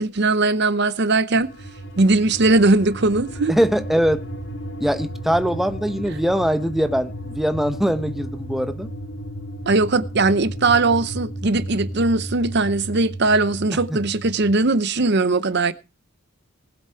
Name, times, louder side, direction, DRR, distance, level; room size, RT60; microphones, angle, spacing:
voice 1, 0.0-1.5 2.0-3.5 9.7-15.7, right 3 dB, 50° right, 0.8 m, -19 dB
sound 1, 1.3-14.6, equal, 70° left, 3.5 m, -34 dB
voice 2, 3.5-4.2 4.8-8.9 13.7-14.0, equal, ahead, 0.8 m, -22 dB
19.5 x 8.0 x 4.5 m
head